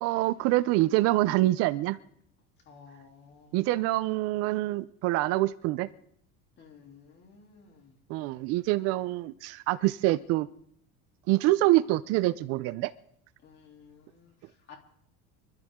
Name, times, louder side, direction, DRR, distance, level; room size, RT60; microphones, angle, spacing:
voice 1, 0.0-2.0 3.5-5.9 8.1-10.5 11.3-12.9, right 17 dB, 50° right, 16 dB, 0.5 m, -25 dB
voice 2, 2.6-3.6 6.6-8.0 13.4-14.8, left 6 dB, 35° left, 2 dB, 3.3 m, -54 dB
25.0 x 13.5 x 3.7 m, 0.68 s
cardioid pair, 175°, 31 cm